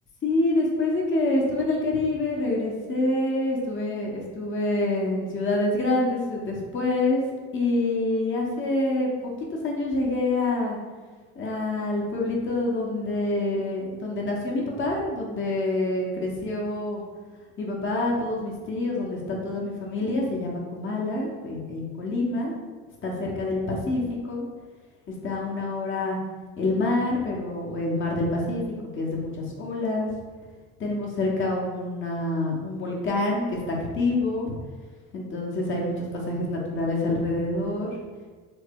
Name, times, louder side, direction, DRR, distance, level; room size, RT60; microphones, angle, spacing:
voice 1, 0.2-7.2 7.5-9.3 9.6-10.8 11.4-17.0 17.6-22.5 23.0-24.4 25.1-26.2 26.6-28.6 28.9-30.1 30.8-34.6 35.1-38.0, left 2 dB, 30° left, -2 dB, 0.9 m, -26 dB
3.2 x 2.1 x 3.5 m, 1.4 s
hypercardioid pair, 65°, 40 cm